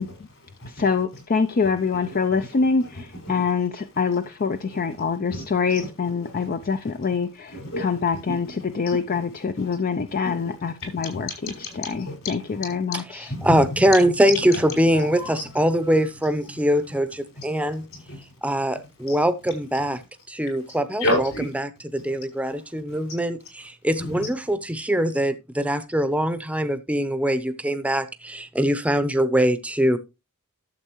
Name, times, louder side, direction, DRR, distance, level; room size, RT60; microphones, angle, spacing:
voice 1, 0.0-0.9 2.0-3.5 4.7-5.0 5.3-7.2 7.5-9.8 10.1-14.0 14.5-15.5 15.8-16.0 17.4-18.3 19.1-19.2 19.7-19.8 20.7-21.5 22.5-22.6 22.9-23.0 24.0-24.3, left 1 dB, 65° left, 5.2 m, -33 dB
voice 2, 0.7-8.5 8.7-11.3 11.8-13.0, left 5 dB, 40° left, 0.4 m, -25 dB
voice 3, 13.4-17.8 18.4-20.0 20.3-21.0 21.6-30.0, equal, 5° right, 0.7 m, -22 dB
12.5 x 7.3 x 3.0 m
head